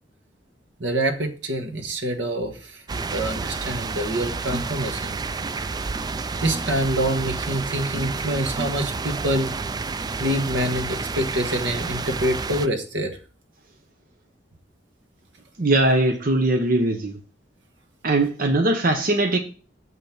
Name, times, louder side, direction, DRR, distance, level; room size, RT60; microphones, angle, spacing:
voice 1, 0.8-5.2 6.4-9.6 10.2-13.1, right 1 dB, 80° right, 1.6 m, -26 dB
sound 1, 2.9-12.7, right 4 dB, 20° right, 0.3 m, -30 dB
voice 2, 15.6-17.2 18.0-19.4, right 2 dB, 50° right, 0.9 m, -20 dB
7.7 x 5.6 x 5.9 m
head